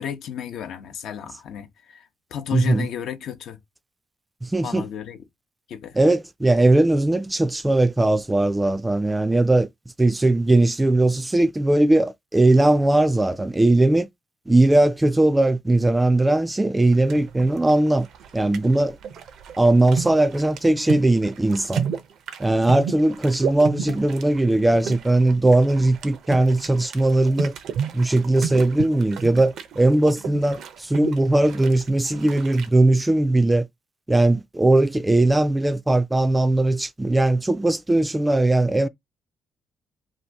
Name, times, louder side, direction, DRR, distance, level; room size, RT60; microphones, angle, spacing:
voice 1, 0.0-3.6 4.6-5.2 5.7-6.0, left 9 dB, 75° left, 0.6 m, -33 dB
voice 2, 2.5-2.9 4.4-4.9 6.0-9.7 10.0-14.1 14.5-18.1 18.3-19.0 19.6-21.9 22.4-27.5 27.9-33.7 34.1-38.9, right 2 dB, 15° right, 0.3 m, -19 dB
sound 1, 16.9-32.7, right 7 dB, 75° right, 0.6 m, -33 dB
2.8 x 2.5 x 3.4 m
cardioid pair, 90°, 0 cm